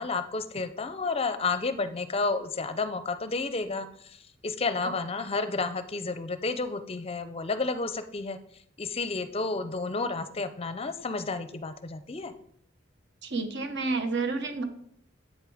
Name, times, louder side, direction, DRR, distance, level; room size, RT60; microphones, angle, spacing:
voice 1, 0.0-8.4 8.8-12.3, left 3 dB, 30° left, 11 dB, 0.6 m, -31 dB
voice 2, 13.2-14.6, right 3 dB, 60° right, 7 dB, 1.3 m, -30 dB
8.2 x 6.8 x 4.9 m, 0.67 s
head